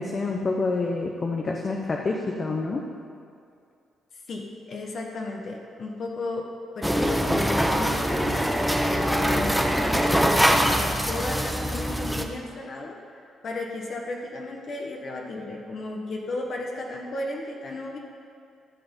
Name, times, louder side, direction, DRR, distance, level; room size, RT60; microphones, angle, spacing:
voice 1, 0.0-2.8, left 3 dB, 35° left, 1 dB, 0.9 m, -27 dB
voice 2, 4.3-6.5 6.7-18.0, left 2 dB, 55° left, 0 dB, 1.2 m, -34 dB
sound 1, 6.8-12.3, equal, ahead, 0.8 m, -23 dB
13.0 x 6.9 x 5.3 m, 2.4 s
cardioid pair, 90°, 0 cm